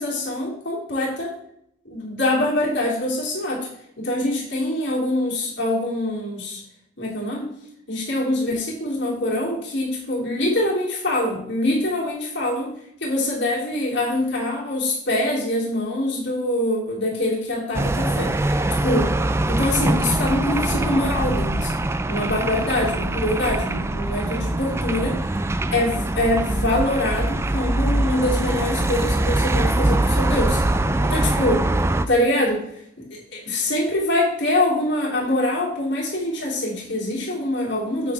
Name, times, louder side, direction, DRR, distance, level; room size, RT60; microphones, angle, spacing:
voice 1, 0.0-1.3 1.8-3.7 4.0-6.6 7.0-7.5 7.9-12.7 13.0-19.1 19.4-21.7 22.1-25.2 25.7-31.6 32.1-32.6 33.0-38.1, left 1 dB, 55° left, -4 dB, 3.2 m, -24 dB
sound 1, 17.7-32.1, right 2 dB, 10° right, 0.3 m, -23 dB
8.5 x 8.5 x 3.5 m, 0.72 s
head